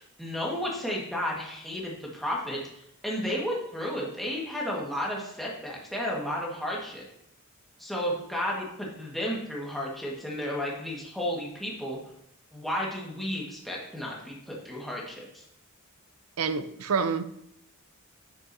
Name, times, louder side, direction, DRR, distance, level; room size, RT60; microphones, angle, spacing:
voice 1, 0.0-7.0 7.8-12.0 12.5-15.4, equal, ahead, -3 dB, 1.5 m, -33 dB
voice 2, 16.4-17.2, right 5 dB, 85° right, 12 dB, 0.6 m, -27 dB
10.5 x 6.1 x 2.7 m, 0.75 s
head